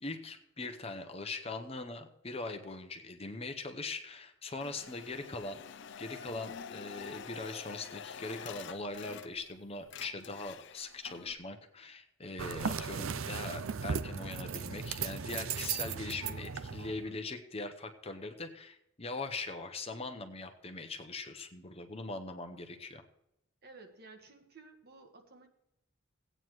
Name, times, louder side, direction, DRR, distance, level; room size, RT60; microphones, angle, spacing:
voice 1, 0.0-5.6 6.0-23.0, left 3 dB, 30° left, 6 dB, 0.8 m, -41 dB
sound 1, 4.6-9.6 9.8-11.3, left 7 dB, 60° left, 0.4 m, -47 dB
sound 2, 12.4-17.0, right 6 dB, 75° right, 0.6 m, -37 dB
voice 2, 23.6-25.5, right 3 dB, 50° right, 4 dB, 1.5 m, -54 dB
16.5 x 9.0 x 3.1 m, 0.82 s
head